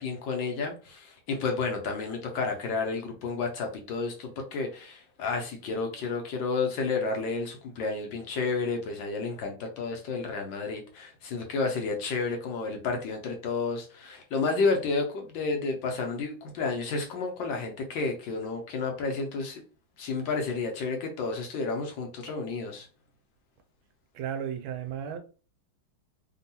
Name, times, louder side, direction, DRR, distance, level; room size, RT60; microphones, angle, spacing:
voice 1, 0.0-19.6 20.0-22.9, left 4 dB, 70° left, 1.3 m, -31 dB
voice 2, 24.1-25.2, right 9 dB, 80° right, 1.3 m, -34 dB
3.5 x 2.3 x 2.7 m
omnidirectional pair, 2.3 m